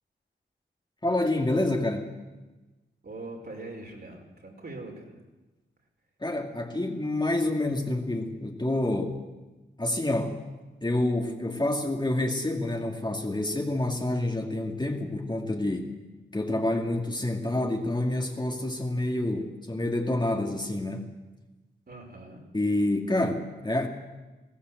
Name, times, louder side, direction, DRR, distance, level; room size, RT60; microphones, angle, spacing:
voice 1, 1.0-2.1 6.2-9.2 9.8-10.4 10.8-15.9 16.3-21.1 22.5-23.9, left 1 dB, 20° left, 1 dB, 2.5 m, -28 dB
voice 2, 3.0-5.2 21.9-22.4, right 2 dB, 50° right, 0 dB, 5.4 m, -42 dB
21.0 x 17.0 x 8.0 m, 1.2 s
wide cardioid pair, 80°, 21 cm